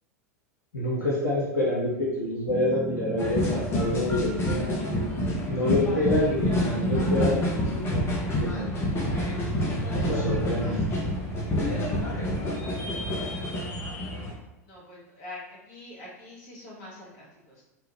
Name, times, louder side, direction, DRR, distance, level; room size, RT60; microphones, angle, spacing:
voice 1, 0.7-4.8 5.5-8.8 10.0-10.7, left 1 dB, 80° left, -6 dB, 0.7 m, -27 dB
sound 1, 2.5-6.8, equal, 20° right, 1.1 m, -40 dB
sound 2, 3.2-14.3, left 1 dB, 25° left, 0.9 m, -28 dB
voice 2, 14.6-17.6, left 2 dB, 45° left, -5 dB, 1.5 m, -45 dB
3.3 x 2.3 x 3.1 m, 0.97 s
figure-of-eight pair, 85°, 9 cm